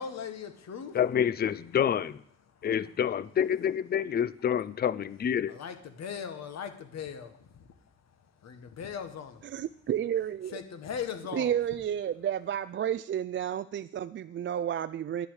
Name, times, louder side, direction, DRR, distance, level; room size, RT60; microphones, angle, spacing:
voice 1, 0.0-1.0 2.5-2.7 5.5-7.7 8.4-9.5 10.5-11.5, left 7 dB, 60° left, 1.6 m, -39 dB
voice 2, 0.9-2.2 2.6-5.5, left 9 dB, 30° left, 0.5 m, -28 dB
voice 3, 9.4-10.6 11.3-15.3, right 10 dB, 40° right, 0.4 m, -31 dB
11.0 x 10.0 x 4.9 m
cardioid pair, 90°, 30 cm